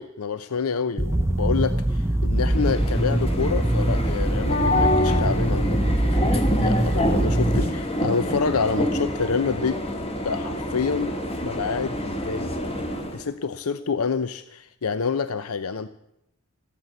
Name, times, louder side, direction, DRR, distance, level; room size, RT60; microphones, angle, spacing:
voice 1, 0.0-9.8 10.2-11.1 11.4-12.5 13.1-15.9, left 5 dB, 90° left, 13 dB, 0.7 m, -27 dB
sound 1, 1.0-7.7, right 1 dB, 10° right, 0.5 m, -23 dB
sound 2, 2.4-13.2, left 1 dB, 30° left, 1.9 m, -27 dB
14.0 x 12.5 x 7.9 m, 0.82 s
head